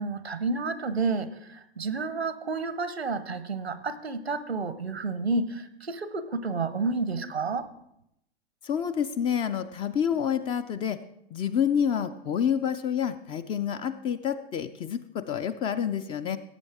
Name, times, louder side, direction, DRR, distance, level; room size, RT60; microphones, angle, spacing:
voice 1, 0.0-7.7, right 3 dB, 90° right, 14 dB, 0.9 m, -30 dB
voice 2, 8.6-11.0 11.3-16.4, left 8 dB, 20° left, 12 dB, 0.3 m, -28 dB
17.0 x 8.2 x 3.5 m, 0.80 s
figure-of-eight pair, 100°, 31 cm